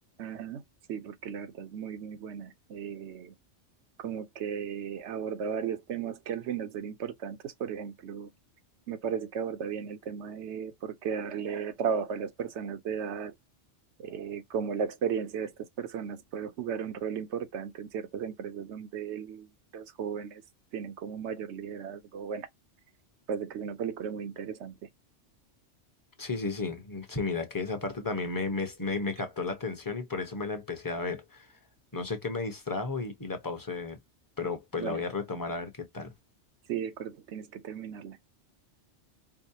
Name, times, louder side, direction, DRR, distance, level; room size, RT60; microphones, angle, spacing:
voice 1, 0.2-0.6 0.9-3.3 4.0-8.3 8.9-13.3 14.0-15.5 15.8-20.4 20.7-22.5 23.3-24.8 34.8-35.0 36.7-38.2, right 7 dB, 75° right, 0.9 m, -35 dB
voice 2, 26.2-31.5 31.9-34.0 34.4-36.1, left 3 dB, 20° left, 0.8 m, -33 dB
4.7 x 2.1 x 2.8 m
omnidirectional pair, 1.2 m